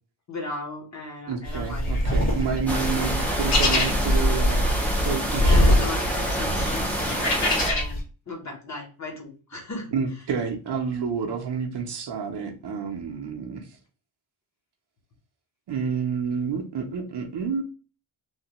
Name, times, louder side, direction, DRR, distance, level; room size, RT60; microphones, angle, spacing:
voice 1, 0.3-2.0 5.4-9.9, left 2 dB, 35° left, 0 dB, 0.8 m, -37 dB
voice 2, 1.3-4.7 5.0-5.7 9.9-13.7 15.7-17.6, right 6 dB, 55° right, 4 dB, 0.6 m, -29 dB
sound 1, 1.4-8.0, left 1 dB, 80° left, 1.6 m, -23 dB
sound 2, 2.7-7.7, equal, 5° left, 0.4 m, -28 dB
3.1 x 2.2 x 2.8 m, 0.36 s
wide cardioid pair, 170°, 50 cm